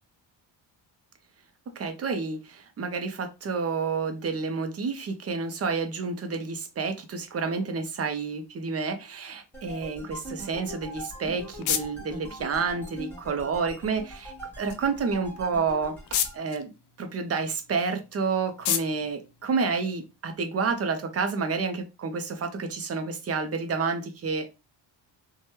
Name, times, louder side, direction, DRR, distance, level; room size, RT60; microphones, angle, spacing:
voice 1, 1.8-16.0 16.3-16.7 17.0-24.6, right 4 dB, 35° right, 7 dB, 0.6 m, -29 dB
sound 1, 9.5-16.4, right 1 dB, 5° left, 1.1 m, -42 dB
sound 2, 10.9-20.3, left 10 dB, 65° left, 0.6 m, -36 dB
3.0 x 2.3 x 2.9 m, 0.28 s
cardioid pair, 120°, 44 cm